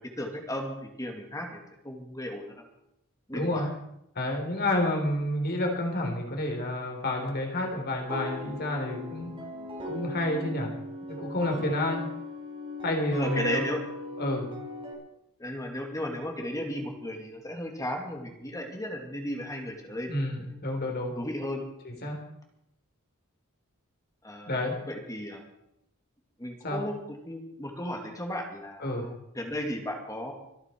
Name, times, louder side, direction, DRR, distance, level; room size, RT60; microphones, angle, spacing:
voice 1, 0.0-2.7 3.3-3.7 9.5-9.7 11.6-11.7 13.1-13.8 15.4-20.1 20.5-20.6 21.2-21.7 24.2-25.4 26.4-26.9 27.2-30.3, left 1 dB, 15° left, 2 dB, 2.4 m, -35 dB
voice 2, 3.3-3.7 4.2-9.3 9.8-10.7 11.1-12.0 12.8-13.6 14.2-14.5 20.1-21.1 21.8-22.2 24.5-24.8 26.6-26.8 28.8-29.1, left 1 dB, 45° left, 1 dB, 4.0 m, -29 dB
sound 1, 8.1-14.9, left 1 dB, 25° right, 5.2 m, -37 dB
26.0 x 8.9 x 4.6 m, 0.79 s
head